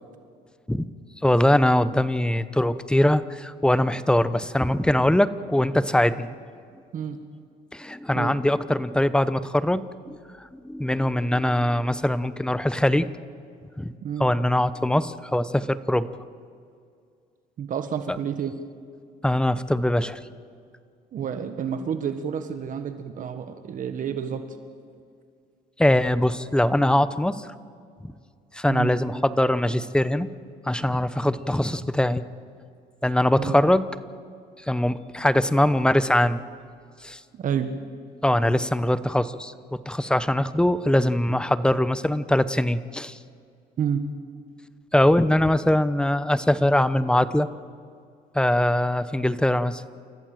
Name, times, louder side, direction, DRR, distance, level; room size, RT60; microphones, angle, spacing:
voice 1, 1.2-6.4 7.7-10.2 10.6-13.1 13.8-13.9 14.2-16.1 19.2-20.2 25.8-27.5 28.5-30.3 30.7-32.2 33.0-33.9 34.7-36.4 37.0-37.2 38.2-39.5 39.9-43.2 44.9-47.5 48.3-49.8, left 1 dB, 5° left, 14 dB, 0.8 m, -22 dB
voice 2, 17.6-18.5 21.1-24.4 28.7-28.9 33.4-33.6 37.4-37.8 43.8-44.0, right 8 dB, 50° right, 8 dB, 1.4 m, -29 dB
29.0 x 14.5 x 7.7 m, 2.3 s
cardioid pair, 110°, 17 cm